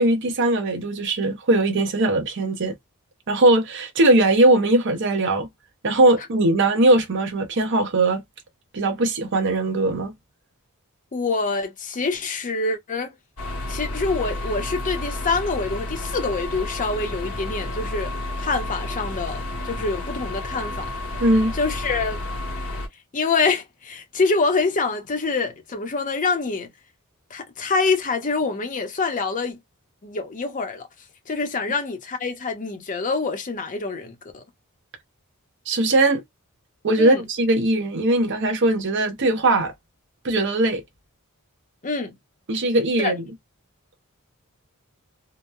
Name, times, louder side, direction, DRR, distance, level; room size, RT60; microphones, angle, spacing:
voice 1, 0.0-2.7 3.3-5.5 5.8-8.2 8.7-10.1 21.2-21.5 35.7-36.2 36.8-39.7 40.2-40.8 42.5-43.2, right 2 dB, 55° right, 0.7 m, -20 dB
voice 2, 11.1-13.1 13.7-18.1 18.4-20.9 21.5-22.2 23.1-26.7 27.3-29.6 30.0-30.9 31.3-34.4 37.0-37.2 41.8-42.1 43.0-43.1, left 4 dB, 35° left, 0.7 m, -25 dB
sound 1, 13.4-22.9, left 1 dB, 80° left, 1.0 m, -31 dB
2.9 x 2.0 x 2.2 m
head